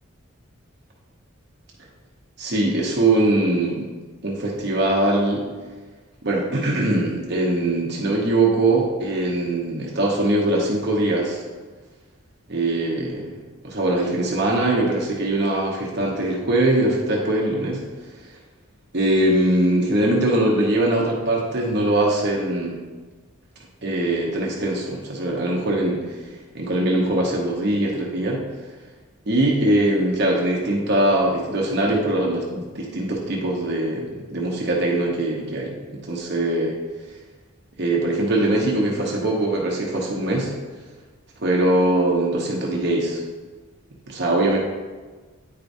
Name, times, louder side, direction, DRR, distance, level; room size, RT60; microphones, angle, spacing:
voice 1, 2.4-3.9 4.2-5.5 6.2-11.4 12.5-13.3 13.6-17.8 18.9-22.8 23.8-26.2 26.5-28.4 29.3-36.8 37.8-40.5 41.4-43.2 44.1-44.6, right 1 dB, 50° right, -2 dB, 0.9 m, -22 dB
9.4 x 4.6 x 2.7 m, 1.3 s
head